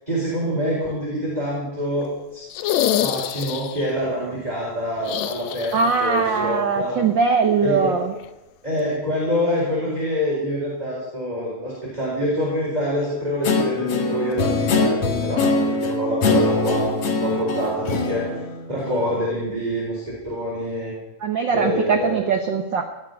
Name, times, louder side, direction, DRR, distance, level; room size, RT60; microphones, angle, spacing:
voice 1, 0.1-2.1 2.3-2.4 3.0-6.9 7.6-7.9 8.6-18.2 18.7-20.9 21.5-22.2, equal, 10° right, -5 dB, 4.2 m, -26 dB
sound 1, 2.5-3.9 5.0-6.2 6.5-6.6 8.2-8.3, left 11 dB, 75° left, 1.9 m, -25 dB
voice 2, 5.7-8.1 21.2-22.8, right 5 dB, 80° right, 6 dB, 1.0 m, -21 dB
Guitar, 13.4-19.3, left 3 dB, 55° left, 2.4 m, -23 dB
18.0 x 7.6 x 9.4 m, 1.0 s
omnidirectional pair, 3.5 m